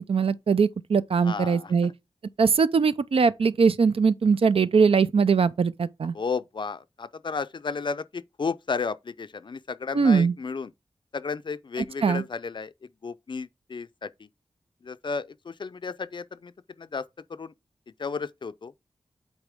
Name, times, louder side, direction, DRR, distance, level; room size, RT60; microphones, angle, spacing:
voice 1, 0.1-1.9 2.4-6.1 9.9-10.3 12.0-12.2, right 5 dB, 70° right, 0.5 m, -21 dB
voice 2, 1.2-1.9 6.1-10.7 11.1-14.3 14.8-16.5 16.8-17.5 18.0-18.7, left 5 dB, 50° left, 0.4 m, -33 dB
8.1 x 4.1 x 3.5 m
wide cardioid pair, 100°, 10 cm